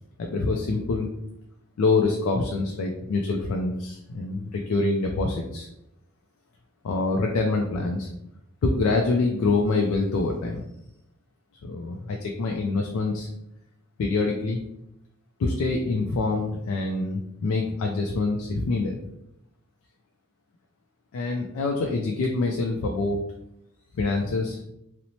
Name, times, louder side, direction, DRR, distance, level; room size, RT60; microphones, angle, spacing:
voice 1, 0.2-1.1 1.8-5.7 6.8-8.1 8.6-10.6 11.6-13.3 14.0-14.6 15.4-19.0 21.1-23.2 23.9-24.6, left 3 dB, 75° left, 1 dB, 0.3 m, -25 dB
2.7 x 2.0 x 2.9 m, 0.82 s
head